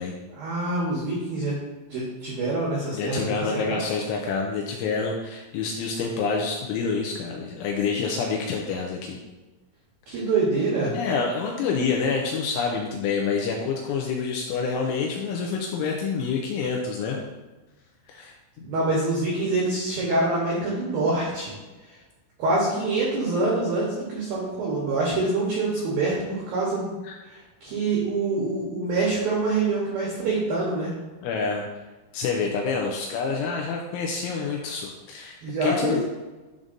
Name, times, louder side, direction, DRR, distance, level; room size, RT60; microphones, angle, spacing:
voice 1, 0.3-1.6 1.9-3.8 10.1-11.0 18.6-21.6 22.4-26.9 27.3-30.9 35.4-36.0, right 2 dB, 85° right, -5 dB, 2.0 m, -25 dB
voice 2, 2.9-9.2 10.9-17.2 18.1-18.3 27.0-27.2 31.2-31.7 32.1-36.0, left 5 dB, 85° left, 0 dB, 2.8 m, -27 dB
10.5 x 3.7 x 2.6 m, 1.2 s
omnidirectional pair, 6.0 m